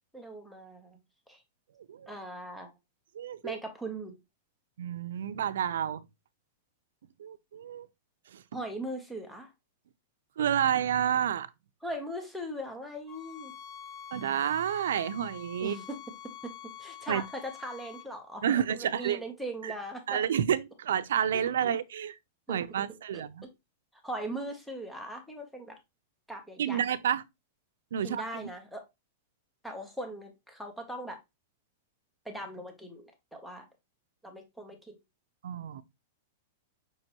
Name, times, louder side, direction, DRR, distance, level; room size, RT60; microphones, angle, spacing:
voice 1, 0.1-1.0 1.3-1.4 2.1-2.7 3.4-4.2 8.5-9.5 11.8-13.5 15.6-16.0 16.4-20.2 22.5-22.6 23.1-23.2 24.0-25.8 26.3-26.8 28.0-28.8 29.6-31.2 32.2-33.7 34.2-35.0, right 1 dB, ahead, 0.7 m, -39 dB
voice 2, 1.8-2.1 3.1-3.6 4.8-6.0 7.2-7.9 8.3-8.4 10.4-11.5 14.1-15.8 17.1-17.2 18.4-19.2 19.6-19.7 20.1-22.2 22.5-23.4 26.6-27.2 27.9-28.5 35.4-35.8, right 9 dB, 85° right, 0.4 m, -30 dB
sound 1, 13.1-18.1, left 9 dB, 30° left, 0.6 m, -46 dB
5.6 x 3.0 x 2.9 m
supercardioid pair, 165°, 0 cm